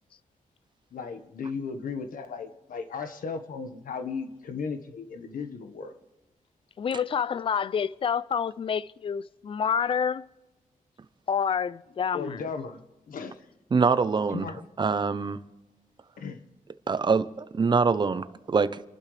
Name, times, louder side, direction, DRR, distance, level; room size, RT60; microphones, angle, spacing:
voice 1, 0.9-5.9 12.1-13.4 14.3-14.6 16.2-16.4, left 5 dB, 80° left, 1.4 m, -36 dB
voice 2, 6.8-10.3 11.3-12.4, left 7 dB, 40° left, 0.4 m, -28 dB
voice 3, 13.7-14.5 14.8-15.4 16.9-18.8, right 5 dB, 30° right, 0.8 m, -24 dB
30.0 x 12.0 x 3.4 m
wide cardioid pair, 140°, 14 cm